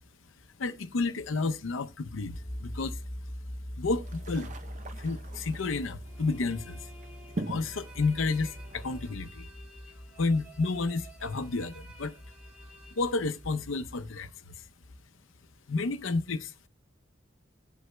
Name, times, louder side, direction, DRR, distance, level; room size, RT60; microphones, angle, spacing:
voice 1, 0.6-3.0 3.8-4.5 5.0-6.8 7.4-9.5 10.2-12.1 12.9-14.6 15.7-16.5, left 3 dB, 80° left, 0.6 m, -31 dB
sound 1, 2.3-14.3, equal, 30° left, 1.8 m, -43 dB
sound 2, 3.9-9.1, right 2 dB, 40° right, 0.6 m, -43 dB
sound 3, 6.0-13.8, right 2 dB, 5° right, 1.4 m, -55 dB
17.5 x 8.0 x 2.2 m
head